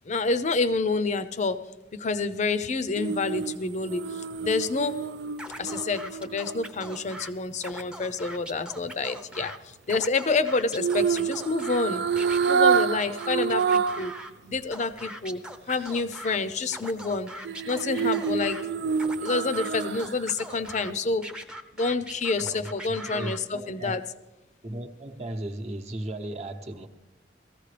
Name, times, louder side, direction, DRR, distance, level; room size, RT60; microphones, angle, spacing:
voice 1, 0.1-1.6 1.9-5.0 5.6-12.0 12.5-14.1 14.4-17.3 17.6-18.6 19.2-21.3 21.8-24.0, left 3 dB, 40° left, 13 dB, 0.6 m, -28 dB
sound 1, 3.0-7.2 10.8-14.1 14.5-14.6 17.4-20.3 20.7-20.8, right 6 dB, 65° right, 0.4 m, -27 dB
Scratching (performance technique), 5.4-7.3 7.6-9.6 9.8-11.8 12.2-14.3 14.7-16.4 16.7-18.6 19.0-20.9 21.2-23.4, right 1 dB, 5° right, 0.7 m, -41 dB
voice 2, 22.4-24.0 24.6-26.9, right 1 dB, 40° right, 4 dB, 0.9 m, -36 dB
18.0 x 14.5 x 3.3 m, 1.0 s
head